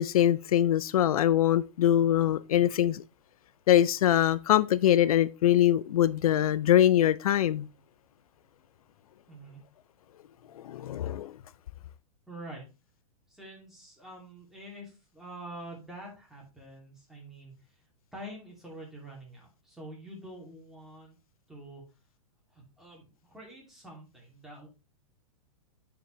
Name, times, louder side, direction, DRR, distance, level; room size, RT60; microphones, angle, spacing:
voice 1, 0.0-3.0 3.7-7.7 10.5-11.4, left 11 dB, 80° left, 0.5 m, -23 dB
voice 2, 9.3-9.6 12.3-12.6 13.3-17.8 18.1-21.2 21.5-21.8 22.5-24.7, right 1 dB, ahead, 2.9 m, -46 dB
9.1 x 4.9 x 3.3 m
hypercardioid pair, 135°, 18 cm